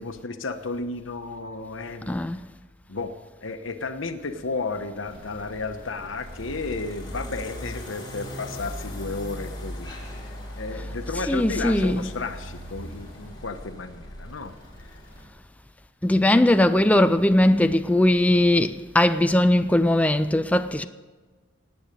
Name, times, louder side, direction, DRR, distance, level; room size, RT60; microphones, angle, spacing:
voice 1, 0.0-2.2 2.9-3.1 3.4-9.9 10.6-14.5 14.8-14.9, left 3 dB, 80° left, 1.1 m, -33 dB
voice 2, 2.1-2.4 11.3-12.1 16.0-20.9, left 1 dB, 5° left, 0.4 m, -20 dB
sound 1, 5.1-15.2, left 1 dB, 25° left, 3.5 m, -38 dB
18.0 x 9.0 x 6.8 m
head